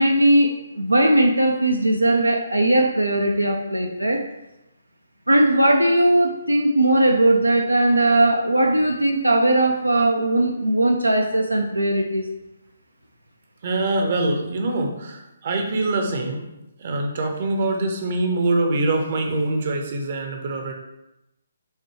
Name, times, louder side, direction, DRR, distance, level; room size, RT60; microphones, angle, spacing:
voice 1, 0.0-4.2 5.3-12.3, right 1 dB, 85° right, 2 dB, 0.4 m, -19 dB
voice 2, 13.6-16.5 16.8-20.7, right 2 dB, 40° right, 3 dB, 0.7 m, -24 dB
6.4 x 2.2 x 3.1 m, 0.92 s
figure-of-eight pair, 135°, 0 cm